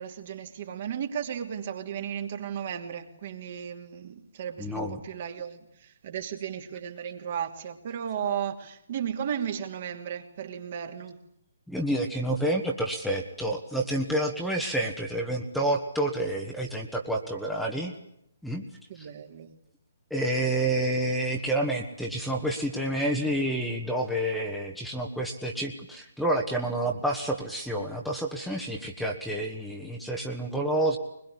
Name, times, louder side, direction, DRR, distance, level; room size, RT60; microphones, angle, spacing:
voice 1, 0.0-11.2 18.9-19.6, right 8 dB, 40° right, 2.7 m, -35 dB
voice 2, 4.6-5.0 11.7-17.9 18.4-18.6 20.1-31.0, right 1 dB, ahead, 1.7 m, -29 dB
22.5 x 21.5 x 9.9 m
figure-of-eight pair, 140°, 0 cm